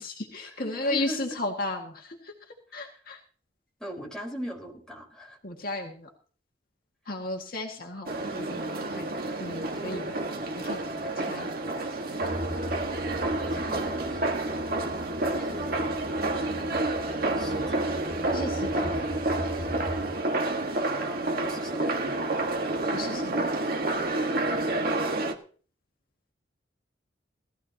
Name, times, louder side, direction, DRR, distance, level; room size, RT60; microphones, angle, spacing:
voice 1, 0.0-2.3 2.7-3.2 5.4-6.1 7.1-9.1 9.4-10.1 10.6-10.8 11.3-11.5 18.3-19.0 22.9-23.5, left 2 dB, 55° left, 1 dB, 2.0 m, -34 dB
voice 2, 0.6-1.3 2.7-2.9 3.8-5.4 13.2-14.8 15.5-15.9 17.4-17.8 20.9-22.0, equal, 5° left, -1 dB, 4.3 m, -40 dB
sound 1, 8.0-25.3, right 2 dB, 55° right, 1.6 m, -29 dB
sound 2, 12.2-20.2, equal, 75° right, 4.6 m, -40 dB
18.0 x 14.0 x 2.9 m, 0.41 s
head